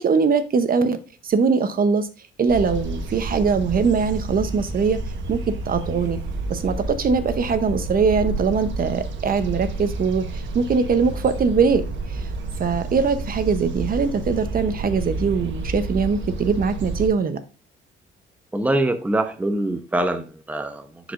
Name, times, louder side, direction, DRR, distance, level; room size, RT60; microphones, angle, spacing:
voice 1, 0.0-2.1 2.4-5.0 5.3-6.2 6.5-12.3 12.6-17.4, right 5 dB, 45° right, 0.8 m, -22 dB
sound 1, 2.5-17.1, right 2 dB, 70° right, 1.2 m, -30 dB
voice 2, 18.5-21.1, right 1 dB, 10° right, 0.7 m, -24 dB
9.9 x 5.0 x 2.5 m
cardioid pair, 90°, 20 cm